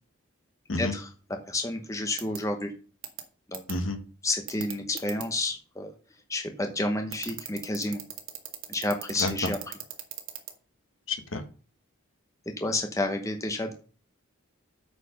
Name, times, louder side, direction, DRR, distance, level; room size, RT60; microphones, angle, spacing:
voice 1, 0.7-1.1 1.5-2.7 3.5-3.6 4.2-5.9 6.3-8.0 8.7-9.7 12.6-13.7, left 2 dB, 15° left, 4 dB, 0.9 m, -30 dB
sound 1, 2.2-2.4 3.0-3.2 3.5-3.7 4.5-5.2 7.1-10.5, right 13 dB, 75° right, 1.6 m, -36 dB
voice 2, 11.1-11.4, left 2 dB, 65° left, 6 dB, 1.5 m, -29 dB
8.6 x 5.0 x 5.1 m, 0.38 s
head